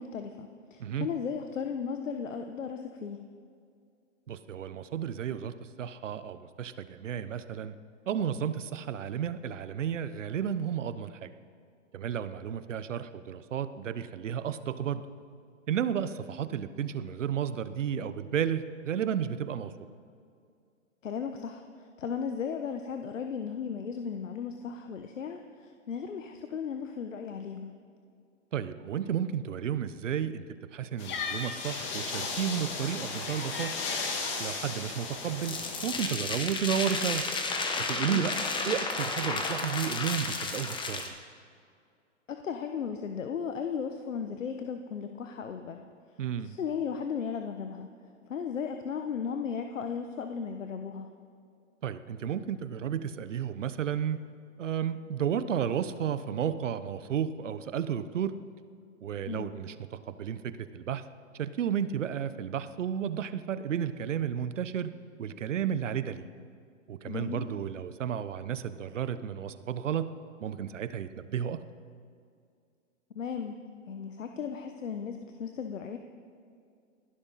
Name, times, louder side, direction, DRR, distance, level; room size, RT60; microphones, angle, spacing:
voice 1, 0.0-3.2 21.0-27.7 38.1-38.3 42.3-45.8 46.4-47.9 48.3-51.1 59.3-59.5 67.0-67.5 73.1-73.6 73.8-76.0, left 6 dB, 80° left, 6 dB, 1.3 m, -36 dB
voice 2, 4.3-7.8 8.1-11.3 11.9-15.1 15.7-19.7 28.5-30.4 30.7-33.7 34.4-37.3 37.8-38.4 38.7-41.1 46.2-46.6 51.8-54.2 54.6-58.3 59.0-61.0 61.4-64.9 65.2-66.3 66.9-70.1 70.4-71.6, right 8 dB, 75° right, 12 dB, 1.1 m, -32 dB
sound 1, 31.0-36.1, left 4 dB, 30° left, 2.9 m, -35 dB
sound 2, 35.4-41.1, left 3 dB, 10° left, 1.3 m, -32 dB
28.5 x 11.5 x 4.2 m, 2.3 s
hypercardioid pair, 130°, 38 cm